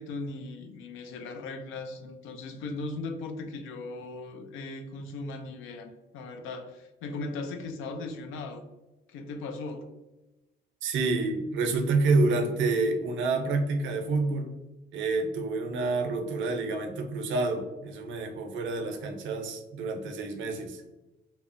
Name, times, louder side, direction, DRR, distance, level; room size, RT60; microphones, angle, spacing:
voice 1, 0.0-8.7 9.1-9.9, left 3 dB, 90° left, 6 dB, 0.4 m, -38 dB
voice 2, 10.8-14.6 14.9-20.8, right 3 dB, 70° right, 5 dB, 0.5 m, -28 dB
2.8 x 2.0 x 2.5 m, 1.1 s
cardioid pair, 90°, 20 cm